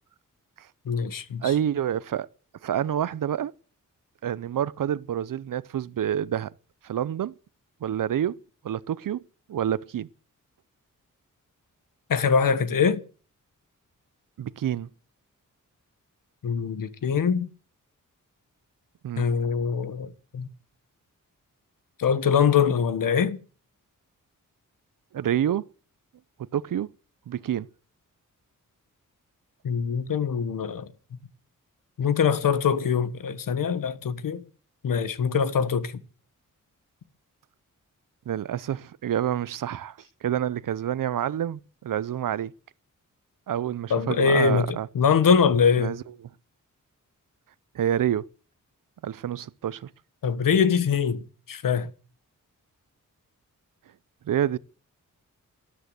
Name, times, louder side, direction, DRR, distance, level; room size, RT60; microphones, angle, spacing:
voice 1, 0.8-1.5 12.1-13.0 16.4-17.5 19.2-20.5 22.0-23.4 29.6-30.9 32.0-34.4 34.8-35.9 43.9-44.7 44.9-45.9 50.2-51.9, left 6 dB, 90° left, 1.4 m, -23 dB
voice 2, 1.4-2.3 2.6-3.5 4.2-6.5 6.8-7.3 7.8-9.2 9.5-10.1 14.4-14.9 19.0-19.3 25.1-25.7 26.5-26.9 27.3-27.7 38.3-42.5 43.5-44.9 45.8-46.3 47.7-48.3 49.0-49.9 54.2-54.6, right 10 dB, 80° right, 0.7 m, -28 dB
13.0 x 12.5 x 8.2 m
wide cardioid pair, 115°, 32 cm